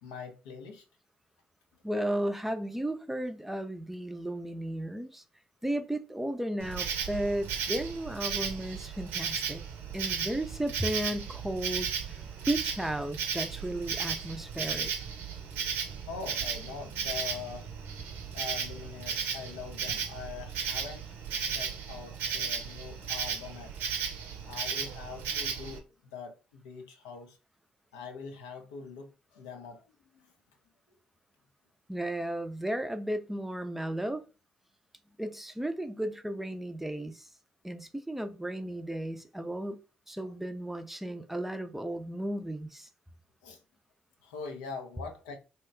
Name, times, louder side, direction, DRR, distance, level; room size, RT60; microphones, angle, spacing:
voice 1, 0.0-0.8 16.1-17.7 18.3-21.0 21.5-23.7 24.5-25.9 26.1-27.4 27.9-29.8 30.1-30.3 40.2-40.3 43.4-43.6 44.2-45.4, left 5 dB, 80° left, 0.5 m, -43 dB
voice 2, 1.8-5.2 5.6-9.6 9.9-12.2 12.5-14.9 31.9-34.2 35.2-37.3 37.6-39.8 40.1-42.9, right 1 dB, 5° right, 0.5 m, -34 dB
Insect, 6.6-25.8, right 7 dB, 65° right, 0.6 m, -35 dB
2.8 x 2.2 x 3.3 m
hypercardioid pair, 45°, 4 cm